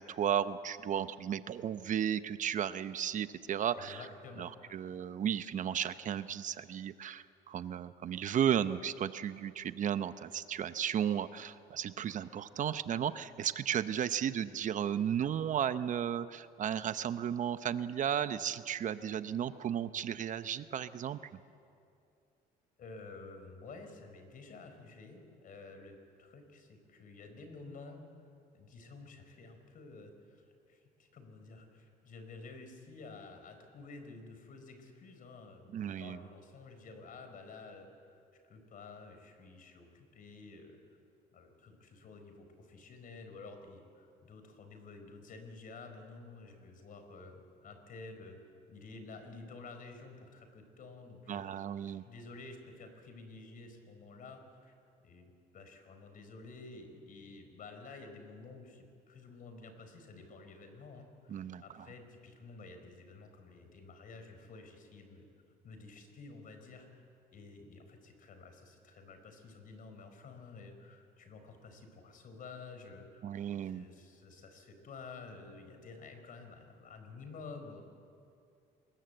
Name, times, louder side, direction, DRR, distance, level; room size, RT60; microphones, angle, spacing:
voice 1, 0.0-4.0 4.4-21.2 35.7-36.2 51.3-52.0 61.3-61.6 73.2-73.8, right 9 dB, 50° right, 13 dB, 0.8 m, -34 dB
voice 2, 3.8-4.7 22.8-28.0 28.5-40.8 41.3-48.4 48.7-51.7 52.0-54.8 55.0-65.3 65.6-66.9 67.3-77.8, left 3 dB, 55° left, 6 dB, 4.4 m, -51 dB
25.5 x 21.0 x 7.9 m, 2.5 s
cardioid pair, 110°, 17 cm